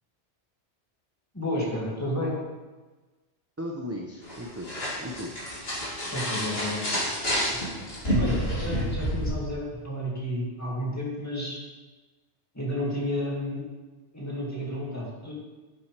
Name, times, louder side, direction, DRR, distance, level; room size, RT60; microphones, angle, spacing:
voice 1, 1.3-2.4 6.1-6.9 8.2-11.6 12.5-13.6 14.1-15.3, left 1 dB, 15° left, -5 dB, 2.2 m, -31 dB
voice 2, 3.6-5.3 7.2-7.9, equal, 15° right, 0 dB, 0.5 m, -38 dB
sound 1, 4.2-9.3, equal, 60° left, 2.9 m, -29 dB
11.0 x 7.3 x 3.4 m, 1.2 s
omnidirectional pair, 1.2 m